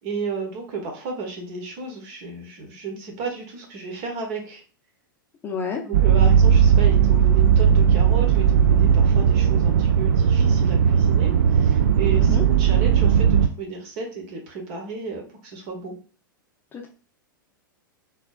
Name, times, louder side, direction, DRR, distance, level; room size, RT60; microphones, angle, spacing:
voice 1, 0.0-4.6 5.8-16.0, right 4 dB, 40° right, 3 dB, 1.2 m, -33 dB
voice 2, 5.4-5.8 12.2-12.4 16.7-16.9, left 6 dB, 20° left, 2 dB, 0.6 m, -29 dB
sound 1, 5.9-13.5, right 8 dB, 55° right, 0.4 m, -17 dB
4.2 x 3.1 x 2.4 m, 0.37 s
figure-of-eight pair, 100°, 11 cm